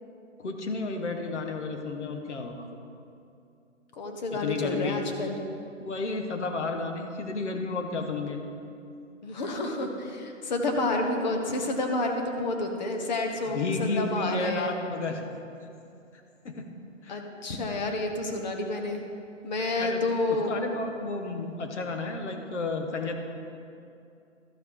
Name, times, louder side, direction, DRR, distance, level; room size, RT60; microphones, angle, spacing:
voice 1, 0.4-2.7 4.3-5.1 5.8-8.4 13.5-15.2 16.4-16.7 17.0-17.2 19.8-20.0 20.3-23.2, left 3 dB, 60° left, 4 dB, 1.3 m, -32 dB
voice 2, 4.0-5.4 9.2-14.7 17.1-19.0 19.4-20.5, left 2 dB, 35° left, 3 dB, 1.1 m, -29 dB
13.0 x 5.8 x 4.8 m, 2.6 s
hypercardioid pair, 155°, 39 cm